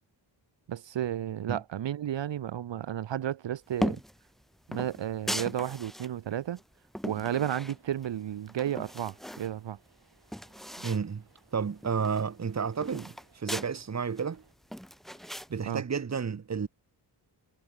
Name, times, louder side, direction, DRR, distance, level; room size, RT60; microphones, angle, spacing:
voice 1, 0.7-4.0 4.7-6.6 7.0-9.8 15.7-15.8, right 10 dB, 80° right, 0.8 m, -32 dB
sound 1, 3.8-4.2 4.7-6.1 6.6-8.1 8.5-9.5 9.9-10.0 10.2-11.0 11.4-11.5 11.8-13.7 14.2-15.5, equal, ahead, 0.6 m, -37 dB
sound 2, 7.7-14.5, right 6 dB, 60° right, 5.0 m, -65 dB
voice 2, 10.8-11.2 11.5-14.4 15.5-16.7, right 6 dB, 40° right, 1.2 m, -31 dB
wide cardioid pair, 170°, 43 cm